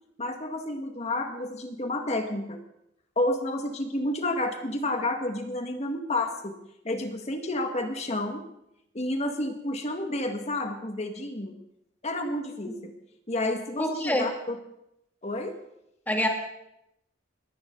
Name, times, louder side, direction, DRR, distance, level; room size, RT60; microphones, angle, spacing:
voice 1, 0.2-2.6 3.2-6.5 6.8-8.4 8.9-11.5 12.0-12.9 13.3-14.6 15.2-15.6, left 1 dB, 35° left, 5 dB, 1.9 m, -30 dB
voice 2, 13.8-14.3 16.1-16.3, left 1 dB, 10° left, 2 dB, 2.4 m, -26 dB
21.0 x 16.5 x 3.9 m, 0.81 s
head